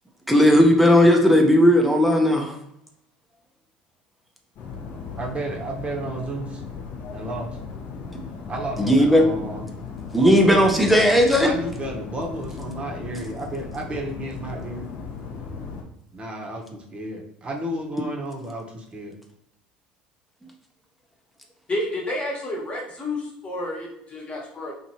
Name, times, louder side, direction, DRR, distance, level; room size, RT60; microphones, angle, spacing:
voice 1, 0.3-2.6 8.8-9.3 10.1-11.5, equal, ahead, 0.6 m, -16 dB
sound 1, 4.6-15.8, left 5 dB, 55° left, 0.7 m, -37 dB
voice 2, 5.2-6.6 7.1-7.5 8.5-9.7 10.2-10.9 11.4-14.9 16.1-19.2, right 1 dB, 25° right, 0.8 m, -32 dB
voice 3, 21.7-24.7, left 1 dB, 30° left, 1.1 m, -30 dB
3.0 x 2.6 x 2.7 m
hypercardioid pair, 70°, 4 cm